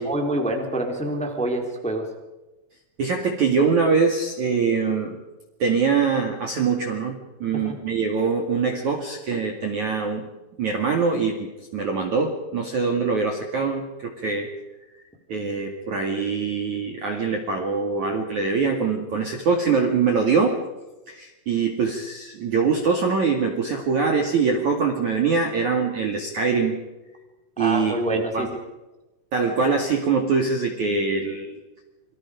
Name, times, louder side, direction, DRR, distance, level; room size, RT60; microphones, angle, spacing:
voice 1, 0.0-2.0 7.6-7.7 27.6-28.5, right 1 dB, ahead, 2 dB, 2.8 m, -26 dB
voice 2, 3.0-5.2 5.6-10.3 10.6-14.5 15.3-20.6 21.1-26.8 27.6-28.5 29.3-31.6, right 5 dB, 50° right, 2 dB, 2.8 m, -23 dB
28.0 x 25.0 x 5.2 m, 1.1 s
omnidirectional pair, 5.9 m